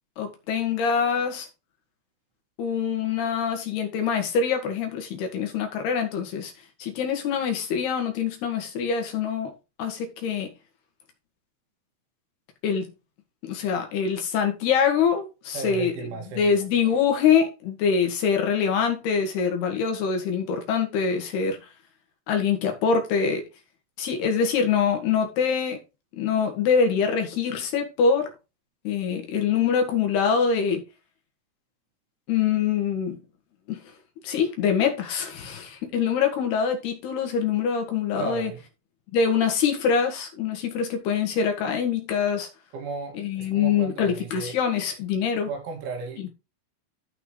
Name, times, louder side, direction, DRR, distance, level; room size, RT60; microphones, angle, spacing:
voice 1, 0.2-1.5 2.6-6.5 6.8-9.5 9.8-10.5 12.6-12.9 13.5-15.9 16.4-21.6 22.3-23.4 24.0-25.8 26.2-28.3 28.8-30.8 32.3-33.2 33.7-33.8 34.2-38.5 39.1-42.5 43.2-45.5, left 6 dB, 65° left, 3.4 m, -24 dB
voice 2, 15.5-16.6 38.2-38.6 42.7-44.6 45.4-46.3, right 4 dB, 80° right, 4.8 m, -35 dB
14.0 x 5.9 x 3.2 m
omnidirectional pair, 5.4 m